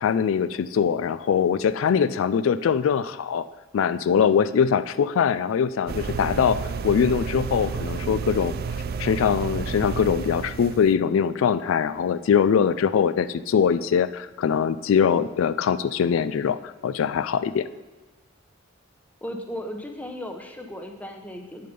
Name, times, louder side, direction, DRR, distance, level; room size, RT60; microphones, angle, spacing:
voice 1, 0.0-3.5 3.7-6.6 6.8-8.5 9.0-17.6, left 7 dB, 85° left, 14 dB, 0.3 m, -22 dB
sound 1, 5.9-10.9, right 5 dB, 50° right, 0.3 m, -31 dB
voice 2, 19.2-21.7, equal, 10° left, 4 dB, 0.8 m, -36 dB
8.5 x 6.7 x 5.3 m, 1.2 s
head